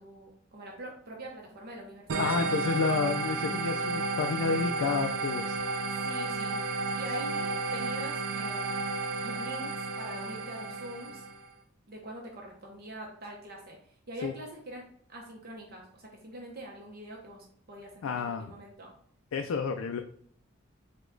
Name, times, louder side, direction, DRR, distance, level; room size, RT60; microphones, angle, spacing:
voice 1, 0.0-2.4 5.9-6.6 6.9-8.8 9.2-11.2 11.9-14.8 15.1-18.9, right 1 dB, 45° right, -1 dB, 0.8 m, -44 dB
sound 1, 2.1-11.5, right 3 dB, 75° right, 0.4 m, -32 dB
voice 2, 2.2-5.6 14.2-14.3 18.0-18.5 19.3-20.0, left 5 dB, 75° left, 5 dB, 0.3 m, -30 dB
4.9 x 2.2 x 3.8 m, 0.63 s
head